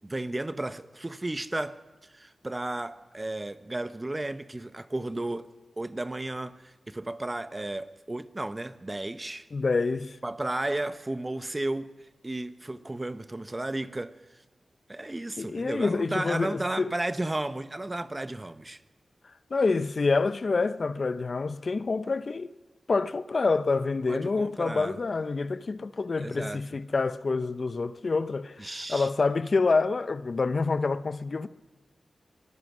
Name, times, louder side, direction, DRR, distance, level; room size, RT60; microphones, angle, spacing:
voice 1, 0.0-1.8 2.1-5.5 5.8-9.5 10.2-11.9 12.2-14.1 14.9-18.8 24.1-25.0 26.2-26.6 28.6-29.1, right 2 dB, 30° right, 1.1 m, -33 dB
voice 2, 9.5-10.2 15.4-16.9 19.5-22.5 22.9-31.5, left 4 dB, 60° left, 0.7 m, -27 dB
24.0 x 19.5 x 6.2 m
cardioid pair, 45°, 0 cm